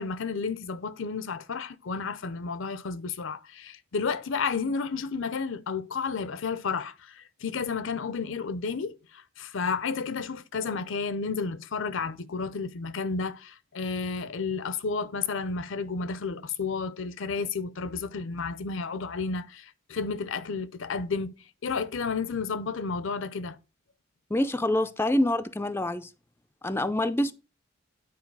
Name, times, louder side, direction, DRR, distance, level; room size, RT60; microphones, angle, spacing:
voice 1, 0.0-21.3 21.6-23.6, left 5 dB, 70° left, 0.6 m, -32 dB
voice 2, 24.3-26.1 26.6-27.3, left 1 dB, 10° left, 0.4 m, -26 dB
9.4 x 4.6 x 4.6 m
head